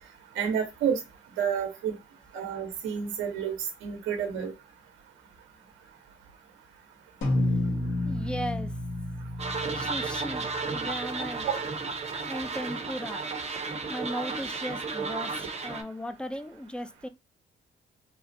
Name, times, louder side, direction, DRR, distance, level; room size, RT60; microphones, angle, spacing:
voice 1, 0.3-1.0 1.4-1.9 2.3-3.5 3.8-4.5 11.4-11.6, right 7 dB, 90° right, 0.8 m, -29 dB
sound 1, 7.2-11.8, left 1 dB, 75° left, 1.3 m, -31 dB
voice 2, 8.0-8.8 9.7-11.5 12.3-13.2 13.9-17.1, equal, 5° left, 0.4 m, -37 dB
sound 2, 9.4-15.8, right 4 dB, 35° right, 0.7 m, -33 dB
3.7 x 2.1 x 2.6 m
cardioid pair, 90°, 20 cm